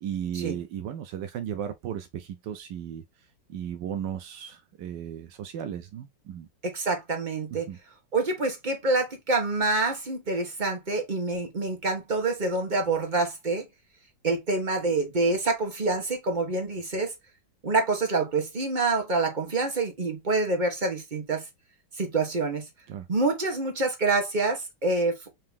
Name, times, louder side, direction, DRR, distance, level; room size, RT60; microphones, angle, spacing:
voice 1, 0.0-3.0 3.5-6.5 7.7-7.8 22.9-23.1, right 9 dB, 80° right, 1.2 m, -35 dB
voice 2, 6.6-7.7 8.1-13.7 14.2-17.1 17.6-21.4 22.0-22.6 23.1-25.2, right 3 dB, 30° right, 1.1 m, -26 dB
4.2 x 2.8 x 3.4 m
omnidirectional pair, 2.0 m